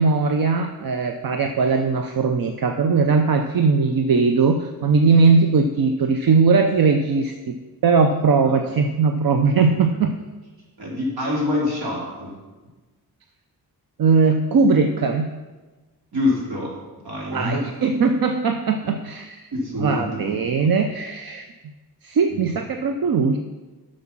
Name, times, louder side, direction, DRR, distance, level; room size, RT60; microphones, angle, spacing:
voice 1, 0.0-7.6 7.8-10.2 14.0-15.4 17.3-19.5 19.8-21.5 22.0-23.4, right 4 dB, 65° right, 6 dB, 0.7 m, -19 dB
voice 2, 10.8-12.3 16.1-16.7 17.0-17.7 19.5-20.3 22.3-22.5, left 2 dB, 80° right, -4 dB, 3.4 m, -26 dB
9.5 x 6.6 x 6.0 m, 1.3 s
wide cardioid pair, 95°, 38 cm